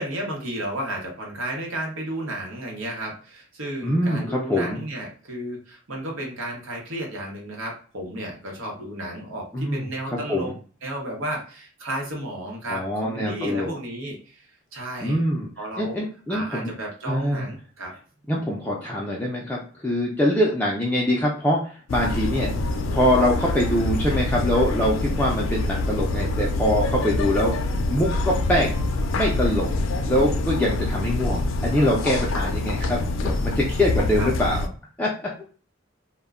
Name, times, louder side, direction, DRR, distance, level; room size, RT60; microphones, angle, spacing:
voice 1, 0.0-10.5 10.8-14.5 14.7-15.2 15.6-16.0 16.3-17.9 34.2-34.3, right 1 dB, 80° right, -1 dB, 0.9 m, -33 dB
voice 2, 3.8-4.8 9.5-10.5 12.7-13.8 15.0-15.5 15.8-16.7 17.1-17.5 18.3-28.7 29.1-29.7 30.0-34.6 35.0-35.1 35.4-35.5, equal, 10° left, -4 dB, 0.4 m, -24 dB
sound 1, 21.9-34.7, left 2 dB, 80° left, 0.4 m, -25 dB
2.2 x 2.1 x 3.5 m, 0.40 s
head